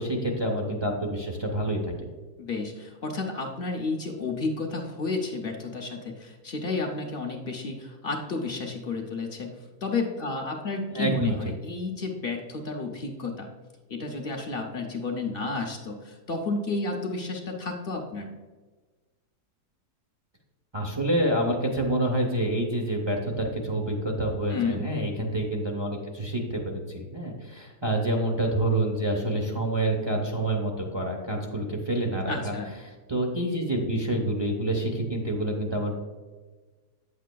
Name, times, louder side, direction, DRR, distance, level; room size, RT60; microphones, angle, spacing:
voice 1, 0.0-2.1 10.9-11.4 20.7-32.6 33.1-36.0, right 1 dB, 30° right, -1 dB, 0.4 m, -27 dB
voice 2, 2.4-13.5 13.9-18.3 24.5-24.8 32.3-32.7, left 3 dB, 50° left, 1 dB, 0.7 m, -31 dB
9.1 x 7.3 x 2.3 m, 1.3 s
omnidirectional pair, 1.7 m